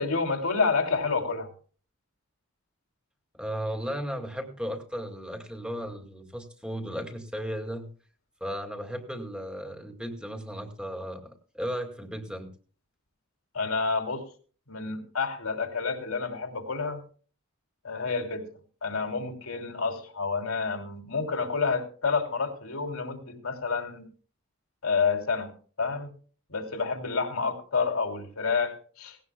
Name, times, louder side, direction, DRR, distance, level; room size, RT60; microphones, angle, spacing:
voice 1, 0.0-1.5 13.5-14.2 14.7-17.0 17.8-18.5 18.8-24.1 24.8-26.1 26.5-29.2, left 4 dB, 80° left, 3 dB, 3.0 m, -29 dB
voice 2, 3.3-7.9 8.4-12.5, equal, 5° right, 4 dB, 2.1 m, -35 dB
18.0 x 17.5 x 2.3 m, 0.40 s
head